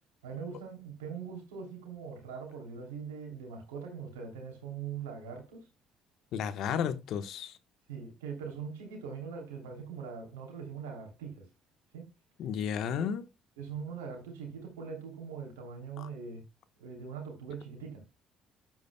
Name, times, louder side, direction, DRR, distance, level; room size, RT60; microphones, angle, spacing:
voice 1, 0.2-5.7 6.6-6.9 7.9-11.5 11.9-12.1 12.9-13.1 13.6-16.4 16.8-18.0, right 6 dB, 90° right, 3.0 m, -42 dB
voice 2, 6.3-7.6 12.4-13.2 16.0-16.1, left 8 dB, 65° left, 1.1 m, -33 dB
10.5 x 8.6 x 2.2 m
hypercardioid pair, 60°, 0 cm